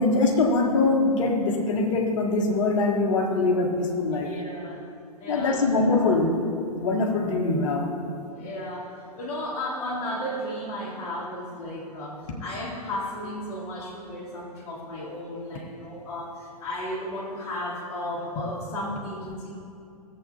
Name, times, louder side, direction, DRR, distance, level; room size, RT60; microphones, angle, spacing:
voice 1, 0.0-4.3 5.3-6.4 6.7-7.9, left 3 dB, 50° left, 2 dB, 1.3 m, -23 dB
voice 2, 4.1-4.8 5.2-5.6 8.0-19.5, left 1 dB, 30° left, -7 dB, 1.9 m, -34 dB
17.0 x 7.6 x 2.8 m, 2.5 s
figure-of-eight pair, 105°, 20 cm